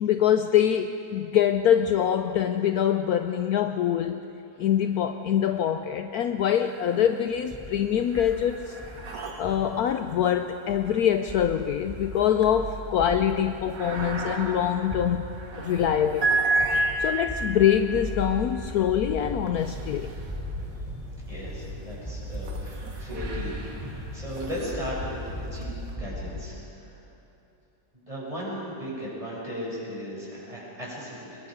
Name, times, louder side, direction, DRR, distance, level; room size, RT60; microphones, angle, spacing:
voice 1, 0.0-4.2 4.6-8.7 9.4-15.3 15.6-16.4 17.0-20.1, left 9 dB, 70° left, 8 dB, 1.0 m, -24 dB
sound 1, 6.6-7.3 7.6-20.8 21.4-25.9, right 2 dB, 55° right, 1.9 m, -34 dB
sound 2, 7.3-26.4, equal, ahead, 4.1 m, -38 dB
voice 2, 21.2-26.9 27.9-31.4, equal, 20° right, -6 dB, 6.9 m, -36 dB
24.5 x 21.5 x 5.2 m, 2.8 s
omnidirectional pair, 1.8 m